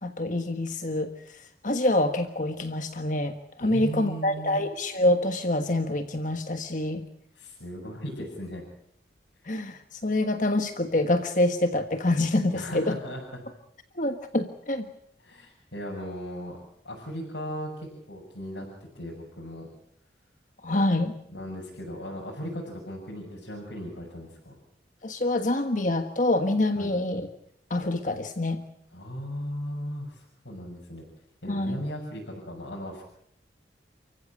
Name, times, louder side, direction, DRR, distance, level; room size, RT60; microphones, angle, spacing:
voice 1, 0.0-7.0 9.5-12.9 14.0-14.8 20.6-21.1 25.0-27.3 27.7-28.6 31.5-31.8, left 1 dB, 45° left, 7 dB, 1.4 m, -26 dB
voice 2, 3.6-4.6 7.3-8.6 12.5-13.4 15.2-16.6 16.8-19.7 21.3-24.6 26.7-26.9 28.9-31.0 31.4-33.0, equal, 85° left, -3 dB, 6.6 m, -37 dB
29.5 x 15.0 x 8.6 m, 0.74 s
head